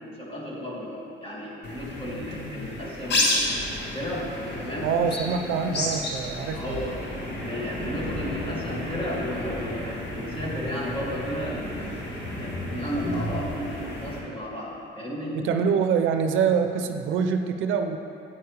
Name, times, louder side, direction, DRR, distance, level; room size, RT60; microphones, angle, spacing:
voice 1, 0.0-3.4 3.9-4.3 4.6-4.9 6.5-7.0 7.4-11.9 12.3-15.4, equal, 25° left, -4 dB, 2.2 m, -33 dB
sound 1, 1.6-14.2, left 1 dB, 60° left, 1.5 m, -31 dB
voice 2, 4.8-6.8 15.3-18.0, right 6 dB, 80° right, 6 dB, 0.6 m, -25 dB
9.5 x 8.7 x 3.3 m, 2.6 s
cardioid pair, 90°, 20 cm